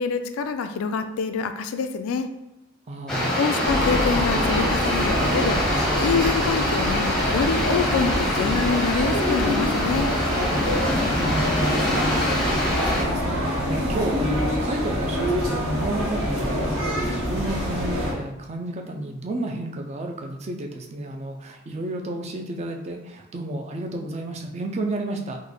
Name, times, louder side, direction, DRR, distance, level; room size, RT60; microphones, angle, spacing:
voice 1, 0.0-2.3 3.4-5.6 6.0-10.1, left 5 dB, 85° left, 8 dB, 0.3 m, -26 dB
voice 2, 2.9-3.4 10.7-25.4, right 1 dB, 30° right, 3 dB, 0.4 m, -32 dB
sound 1, 3.1-13.0, left 1 dB, 5° left, 0.7 m, -25 dB
sound 2, 3.5-12.0, right 1 dB, 70° right, 0.6 m, -39 dB
sound 3, 3.6-18.1, equal, 90° right, 1.0 m, -25 dB
3.1 x 2.1 x 3.9 m, 0.96 s
head